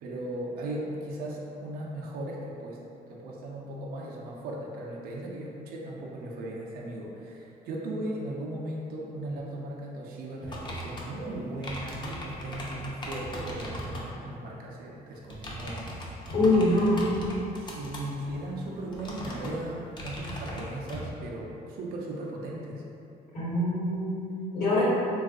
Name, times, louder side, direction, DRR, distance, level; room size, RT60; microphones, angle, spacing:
voice 1, 0.0-2.8 3.1-16.7 17.6-22.8, right 1 dB, 60° right, -3 dB, 0.4 m, -37 dB
sound 1, 10.4-14.1 15.2-21.0, equal, 25° left, 0.5 m, -39 dB
voice 2, 16.3-17.0 23.3-24.8, left 2 dB, 60° left, -8 dB, 1.1 m, -24 dB
3.4 x 2.3 x 2.3 m, 2.7 s
cardioid pair, 110°, 17 cm